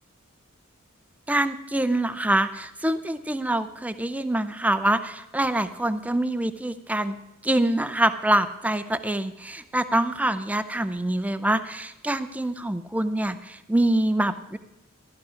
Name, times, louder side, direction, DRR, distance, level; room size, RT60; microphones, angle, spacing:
voice 1, 1.3-7.2 7.4-14.6, right 1 dB, 5° right, 11 dB, 0.5 m, -25 dB
14.0 x 11.5 x 5.0 m, 0.92 s
head